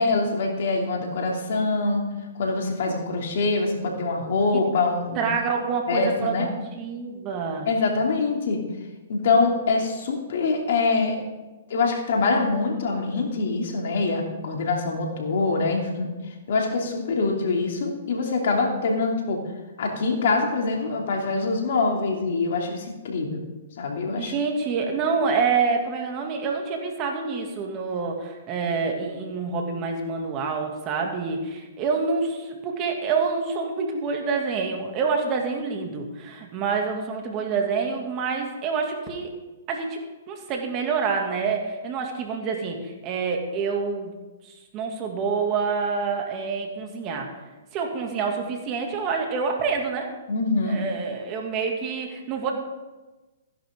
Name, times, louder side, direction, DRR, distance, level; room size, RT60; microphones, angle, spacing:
voice 1, 0.0-2.0 2.4-5.3 5.9-6.5 7.7-8.6 9.1-11.2 11.7-16.1 16.5-19.4 19.8-23.4 23.8-24.3 50.3-50.8, left 3 dB, 60° left, 1 dB, 2.7 m, -24 dB
voice 2, 5.2-6.5 6.7-7.7 24.2-39.3 39.7-44.1 44.4-47.3 47.7-50.1 50.7-52.5, right 5 dB, 35° right, 2 dB, 2.4 m, -27 dB
15.5 x 10.5 x 3.7 m, 1.2 s
hypercardioid pair, 130°, 0 cm